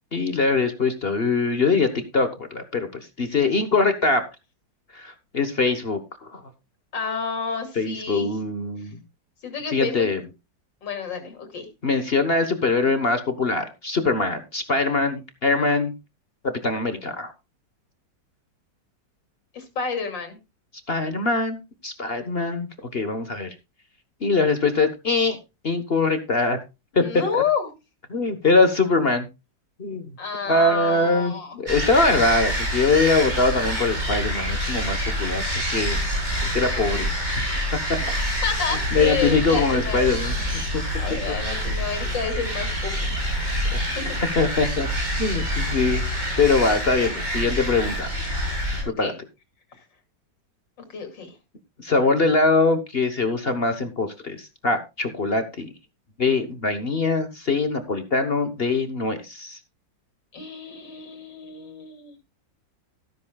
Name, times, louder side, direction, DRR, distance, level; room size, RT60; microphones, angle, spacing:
voice 1, 0.1-4.2 4.9-6.0 6.3-6.4 7.8-9.0 9.7-10.2 11.8-15.9 16.4-17.3 20.9-23.5 24.2-25.4 25.6-26.6 26.9-27.2 28.1-29.3 29.8-30.1 30.5-31.3 31.6-36.0 36.5-37.1 37.7-38.2 38.9-40.8 43.7-44.0 44.3-44.9 45.2-46.0 46.4-48.1 48.8-49.1 51.8-55.7 56.2-59.6, left 3 dB, 35° left, 9 dB, 1.2 m, -22 dB
voice 2, 6.9-8.3 8.8-8.9 9.4-10.1 10.8-11.7 19.5-20.4 26.9-27.7 30.2-31.6 38.4-40.1 41.0-43.1 43.9-44.2 48.8-49.2 49.7-49.8 50.9-51.3 60.3-62.2, left 6 dB, 80° left, 6 dB, 3.4 m, -30 dB
sound 1, 31.7-48.8, equal, 25° right, 4.6 m, -26 dB
13.5 x 12.5 x 2.3 m, 0.25 s
omnidirectional pair, 1.9 m